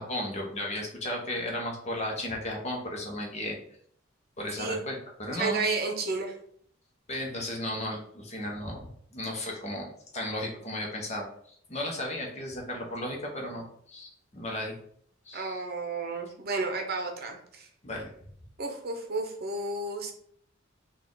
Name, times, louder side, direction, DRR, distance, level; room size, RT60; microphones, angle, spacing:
voice 1, 0.0-3.6 4.4-5.7 7.1-14.7 15.3-15.6 17.8-18.1, left 1 dB, 35° left, 0 dB, 0.9 m, -35 dB
voice 2, 5.4-6.3 15.3-17.7 18.6-20.1, right 3 dB, 50° right, 3 dB, 0.7 m, -32 dB
4.2 x 2.4 x 3.8 m, 0.62 s
head